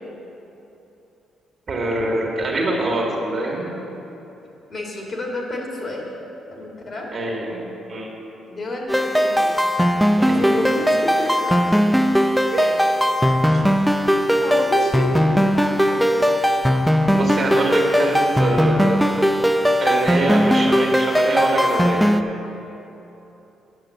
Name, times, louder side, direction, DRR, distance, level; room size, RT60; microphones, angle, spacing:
voice 1, 1.7-3.7 7.1-7.6 7.9-8.1 10.2-10.5 12.5-12.7 17.1-19.3 19.8-22.0, right 2 dB, 45° right, -1 dB, 1.9 m, -24 dB
voice 2, 4.7-6.1 6.5-7.1 8.5-9.6 10.1-11.5 13.4-13.6 14.1-16.3, left 1 dB, 45° left, -1 dB, 2.1 m, -30 dB
sound 1, 8.9-22.2, equal, ahead, 0.5 m, -18 dB
8.7 x 6.3 x 7.6 m, 3.0 s
cardioid pair, 90°, 0 cm